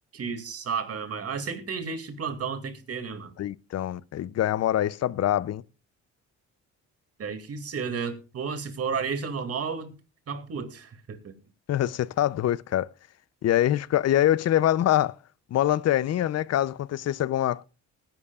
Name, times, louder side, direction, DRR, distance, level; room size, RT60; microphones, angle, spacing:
voice 1, 0.1-3.3 7.2-9.9 10.3-11.3, right 5 dB, 50° right, 2.5 m, -32 dB
voice 2, 3.4-5.6 11.7-12.9 13.4-15.2 15.5-17.6, left 12 dB, 55° left, 0.6 m, -24 dB
19.0 x 11.0 x 2.4 m
cardioid pair, 90°, 30 cm